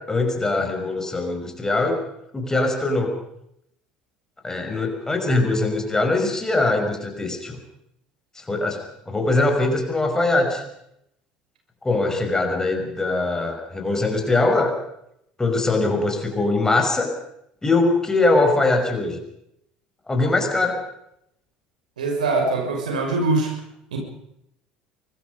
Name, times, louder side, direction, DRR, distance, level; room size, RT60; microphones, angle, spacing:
voice 1, 0.0-2.0 2.3-3.2 4.4-7.6 8.3-10.6 11.8-14.8 15.4-17.1 17.6-19.2 20.1-20.8, left 2 dB, 15° left, 4 dB, 5.5 m, -22 dB
voice 2, 22.0-23.5 23.9-24.0, right 3 dB, 70° right, 2 dB, 6.0 m, -22 dB
24.5 x 20.5 x 5.4 m, 0.76 s
figure-of-eight pair, 65°, 4 cm